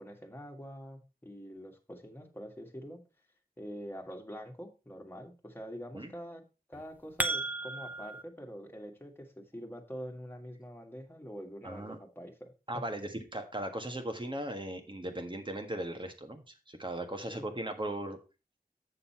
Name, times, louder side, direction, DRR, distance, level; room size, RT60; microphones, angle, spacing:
voice 1, 0.0-3.0 3.6-6.4 6.7-12.8 17.3-17.6, equal, 15° left, 2 dB, 1.9 m, -45 dB
sound 1, 6.7-8.2, right 2 dB, 10° right, 0.9 m, -34 dB
voice 2, 11.6-12.0 12.7-18.2, right 1 dB, 30° right, 5 dB, 1.6 m, -38 dB
7.9 x 6.7 x 4.3 m, 0.30 s
wide cardioid pair, 70°, 15 cm